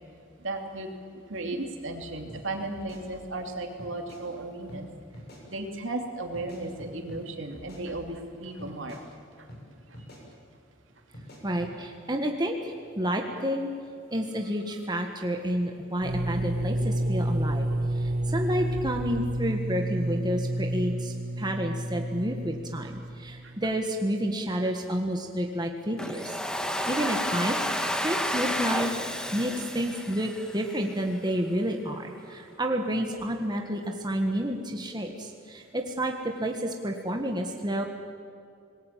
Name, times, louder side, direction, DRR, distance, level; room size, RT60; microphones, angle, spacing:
voice 1, 0.4-0.9 1.1-4.9 5.5-9.0 9.4-9.5 23.4-23.5, right 2 dB, 70° right, 3 dB, 2.9 m, -35 dB
sound 1, 2.3-2.4 2.7-3.5 3.8-4.2 4.7-4.8 5.1-5.4 6.3-7.2 7.5-8.3 8.6-9.0 9.5-9.6 9.9-10.2 11.1-11.7, equal, 55° left, 7.3 m, -47 dB
voice 2, 11.4-13.7 14.1-17.6 17.9-26.4 26.9-27.6 28.0-28.9 29.3-37.8, equal, 20° right, 2 dB, 1.6 m, -30 dB
sound 2, 16.0-23.7, right 1 dB, 50° right, 1.0 m, -30 dB
Domestic sounds home sounds, 26.0-30.9, equal, 5° left, 1.4 m, -31 dB
26.5 x 20.5 x 7.6 m, 2.4 s
head